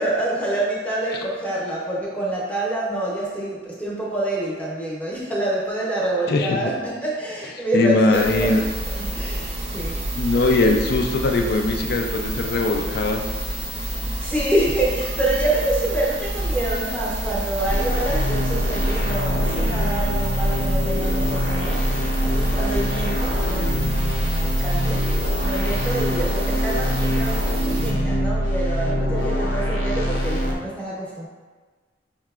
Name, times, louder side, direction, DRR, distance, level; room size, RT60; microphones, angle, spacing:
voice 1, 0.0-8.6 8.9-10.1 14.2-31.3, right 1 dB, 5° left, -6 dB, 0.7 m, -27 dB
voice 2, 6.3-6.7 7.7-8.6 10.2-13.2, left 2 dB, 55° left, 3 dB, 0.3 m, -20 dB
sound 1, 8.1-27.9, right 1 dB, 30° right, 0.5 m, -29 dB
sound 2, 17.6-30.5, equal, 80° left, 0.7 m, -23 dB
5.6 x 2.8 x 2.3 m, 1.4 s
head